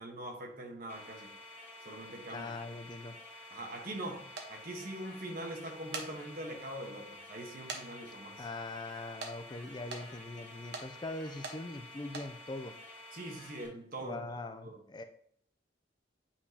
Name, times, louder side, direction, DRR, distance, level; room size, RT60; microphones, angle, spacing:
voice 1, 0.0-1.3 1.8-2.5 3.5-8.5 13.1-14.3 14.6-14.8, right 1 dB, 55° right, 2 dB, 1.2 m, -43 dB
sound 1, 0.9-13.7, left 2 dB, 10° left, 2.5 m, -51 dB
voice 2, 2.3-3.2 8.4-12.7 14.0-15.0, left 2 dB, 25° left, 8 dB, 0.4 m, -42 dB
sound 2, 4.4-4.5 5.7-6.1 6.7-6.8 7.7-7.8 8.1-8.2 9.2-9.3 9.9-10.0 10.7-10.9 11.4-11.6 12.0-12.3, right 4 dB, 75° right, 1.0 m, -40 dB
8.6 x 5.0 x 2.8 m, 0.64 s
head